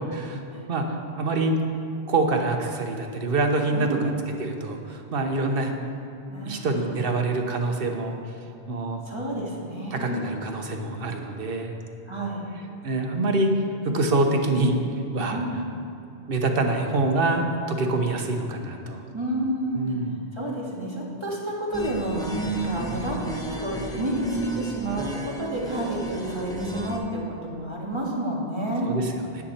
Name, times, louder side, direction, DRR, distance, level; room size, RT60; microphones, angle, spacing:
voice 1, 0.7-1.5 2.1-4.1 4.4-5.7 6.4-8.1 8.7-9.0 9.9-11.7 12.8-13.5 13.8-14.8 15.1-15.4 16.3-19.0 19.7-20.1 28.8-29.4, right 2 dB, 55° right, 3 dB, 1.1 m, -25 dB
voice 2, 3.7-4.2 6.3-6.9 9.0-10.8 12.1-12.4 15.3-15.6 19.1-23.2 23.5-28.9, right 1 dB, 25° right, -4 dB, 1.8 m, -30 dB
sound 1, 21.7-27.0, right 2 dB, 5° left, 0.8 m, -32 dB
9.6 x 9.6 x 4.3 m, 2.8 s
omnidirectional pair, 1.2 m